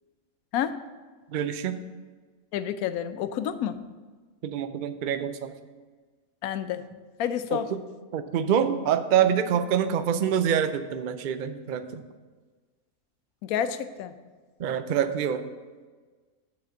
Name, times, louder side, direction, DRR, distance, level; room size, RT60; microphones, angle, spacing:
voice 1, 1.3-1.8 4.4-5.5 7.5-7.8 8.1-12.0 14.6-15.4, right 8 dB, 75° right, 10 dB, 0.4 m, -26 dB
voice 2, 2.5-3.8 6.4-6.8 7.2-7.7 13.4-14.1, left 9 dB, 80° left, 11 dB, 1.0 m, -29 dB
9.1 x 4.3 x 7.0 m, 1.4 s
omnidirectional pair, 1.5 m